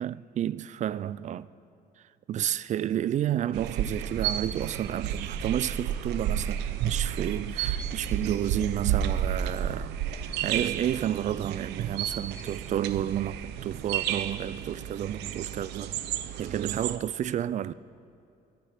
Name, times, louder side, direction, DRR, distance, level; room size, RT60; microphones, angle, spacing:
voice 1, 0.0-1.5 2.3-10.0 10.4-16.0 16.4-17.7, right 11 dB, 45° right, 0.4 m, -31 dB
sound 1, 3.5-17.0, right 10 dB, 85° right, 0.8 m, -32 dB
23.5 x 11.5 x 5.1 m
cardioid pair, 110°, 17 cm